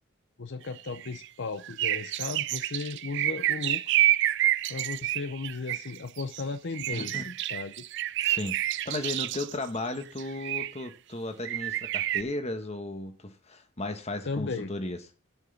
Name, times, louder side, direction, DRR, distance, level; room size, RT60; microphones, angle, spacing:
voice 1, 0.4-4.0 4.7-7.8 14.2-14.7, left 4 dB, 55° left, 0.6 m, -36 dB
sound 1, 0.8-1.3 1.6-6.4 6.7-9.6 10.2-10.9 11.4-12.2, right 14 dB, 55° right, 0.4 m, -29 dB
voice 2, 6.9-7.3 8.2-15.0, left 2 dB, 30° left, 1.3 m, -35 dB
8.3 x 6.2 x 7.0 m
head